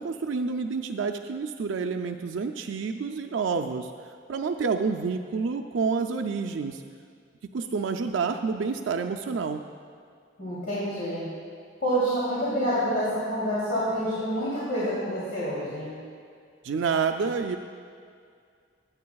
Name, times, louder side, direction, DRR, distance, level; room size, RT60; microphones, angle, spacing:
voice 1, 0.0-3.9 4.3-6.8 7.5-9.6 16.6-17.6, right 5 dB, 80° right, 5 dB, 0.4 m, -28 dB
voice 2, 10.4-11.2 11.8-15.9, equal, 60° left, -10 dB, 2.9 m, -27 dB
21.5 x 9.2 x 2.3 m, 2.2 s
head